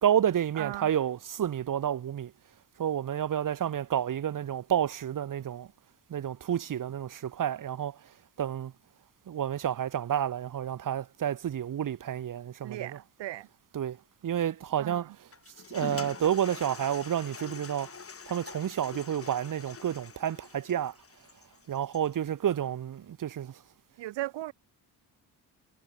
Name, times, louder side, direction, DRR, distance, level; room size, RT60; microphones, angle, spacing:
voice 1, 0.0-2.3 2.8-5.7 6.1-8.0 8.4-8.7 9.3-13.0 13.7-14.0 14.2-15.1 15.7-17.9 18.3-20.9 21.7-23.6, right 10 dB, 50° right, 1.5 m, -30 dB
voice 2, 0.5-0.9 12.6-13.5 14.8-15.2 24.0-24.5, right 15 dB, 90° right, 2.4 m, -37 dB
Toilet flush, 15.3-22.2, left 5 dB, 35° left, 4.5 m, -45 dB
cardioid pair, 110°, 42 cm